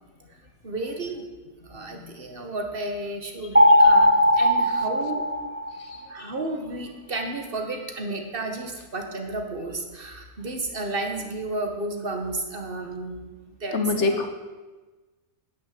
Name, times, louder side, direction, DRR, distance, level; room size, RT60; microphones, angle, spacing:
voice 1, 0.6-1.3 1.6-5.2 6.1-14.3, right 2 dB, 40° right, 4 dB, 1.8 m, -32 dB
sound 1, 3.6-6.0, left 1 dB, 10° right, 0.6 m, -18 dB
voice 2, 13.7-14.3, left 3 dB, 55° left, 7 dB, 1.4 m, -23 dB
10.0 x 10.0 x 7.9 m, 1.2 s
omnidirectional pair, 1.5 m